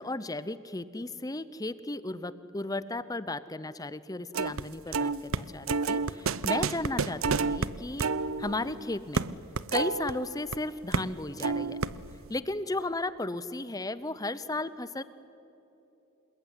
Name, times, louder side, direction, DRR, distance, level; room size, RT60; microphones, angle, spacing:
voice 1, 0.0-8.1 8.4-9.2 9.7-11.8 12.3-15.0, left 2 dB, 15° left, 15 dB, 0.7 m, -34 dB
sound 1, 4.3-4.6 4.9-10.6 10.9-11.1 11.4-12.2, right 4 dB, 70° right, 0.7 m, -30 dB
26.5 x 21.5 x 9.9 m, 2.9 s
head